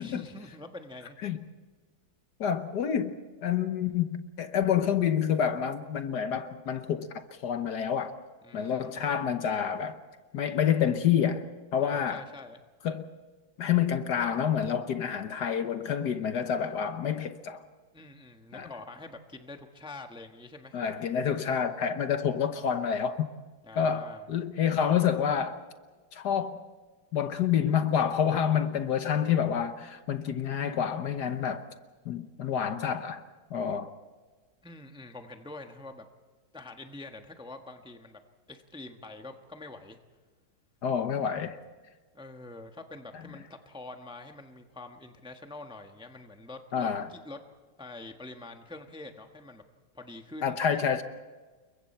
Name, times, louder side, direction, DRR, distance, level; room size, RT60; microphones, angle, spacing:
voice 1, 0.0-1.2 8.4-9.0 11.8-12.6 17.9-20.8 23.6-24.2 34.6-36.1 36.5-38.2 38.5-40.0 42.1-47.4 47.8-49.6 49.9-50.6, left 2 dB, 5° right, 1.0 m, -45 dB
voice 2, 2.4-8.1 8.5-10.0 10.3-11.4 11.7-12.2 12.8-13.1 13.6-17.6 18.5-18.7 20.7-23.3 23.8-25.6 26.1-26.6 27.1-31.7 32.0-33.2 33.5-33.9 40.8-41.6 46.7-47.1 50.4-51.0, left 8 dB, 65° left, 1.4 m, -28 dB
29.0 x 23.0 x 4.4 m
omnidirectional pair, 2.1 m